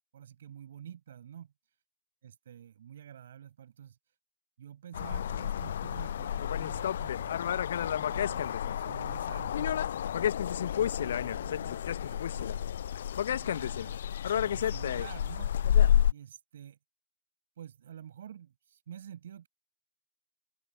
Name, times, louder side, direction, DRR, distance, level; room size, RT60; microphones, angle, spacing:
voice 1, 0.1-1.5 2.2-4.0 4.6-9.7 10.4-12.7 13.2-15.5 16.1-16.8 17.6-19.5, right 9 dB, 65° right, 7.1 m, -49 dB
sound 1, 4.9-16.1, left 9 dB, 65° left, 0.3 m, -30 dB
open air
figure-of-eight pair, 115°, 0 cm